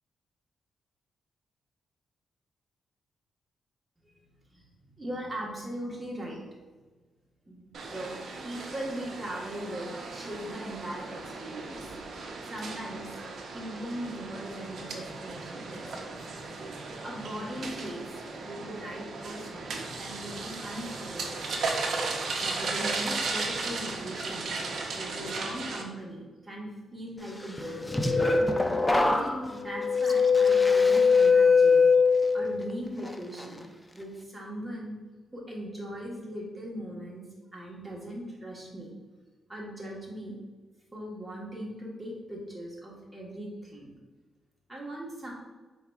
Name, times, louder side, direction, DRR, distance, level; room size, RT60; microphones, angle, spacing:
voice 1, 4.5-6.4 7.5-8.1 8.4-11.9 12.4-13.1 13.5-16.3 17.0-21.6 22.4-24.6 24.9-28.0 28.9-31.8 32.3-33.6 33.9-34.9 35.3-37.3 37.5-38.9 39.5-40.4 40.9-43.9 44.7-45.3, right 1 dB, 15° right, -4 dB, 1.2 m, -39 dB
sound 1, 7.7-25.8, right 3 dB, 65° right, 0.6 m, -36 dB
sound 2, 27.6-32.6 33.0-33.4, left 4 dB, 10° left, 0.3 m, -22 dB
4.7 x 4.1 x 2.3 m, 1.3 s
cardioid pair, 105°, 0 cm